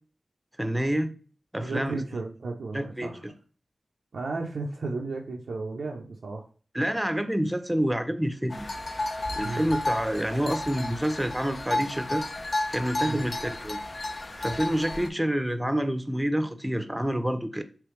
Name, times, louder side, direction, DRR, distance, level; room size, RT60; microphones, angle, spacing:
voice 1, 0.6-1.1 1.5-2.0 2.7-3.1 6.7-8.7 9.4-12.2 12.7-13.8 14.4-17.6, equal, 10° right, 9 dB, 0.6 m, -28 dB
voice 2, 1.6-3.2 4.1-6.5 9.3-9.7 13.0-13.3, right 3 dB, 85° right, -1 dB, 0.4 m, -34 dB
sound 1, 8.5-15.1, left 2 dB, 60° left, 0.5 m, -32 dB
3.3 x 3.0 x 3.1 m, 0.39 s
cardioid pair, 40°, 0 cm